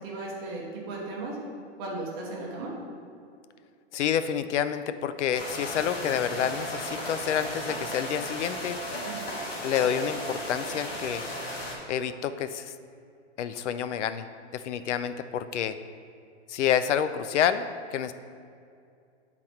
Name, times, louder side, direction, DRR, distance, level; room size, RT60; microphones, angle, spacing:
voice 1, 0.0-1.4 1.8-2.7 9.0-9.2, right 2 dB, 20° right, -3 dB, 0.8 m, -36 dB
voice 2, 3.9-8.8 9.6-11.2 11.9-12.7 13.4-14.2 14.5-15.8 16.5-18.1, left 9 dB, 75° left, 12 dB, 0.5 m, -28 dB
sound 1, 5.3-11.7, left 1 dB, 55° left, 1.7 m, -35 dB
8.7 x 4.1 x 4.3 m, 2.4 s
hypercardioid pair, 175°, 36 cm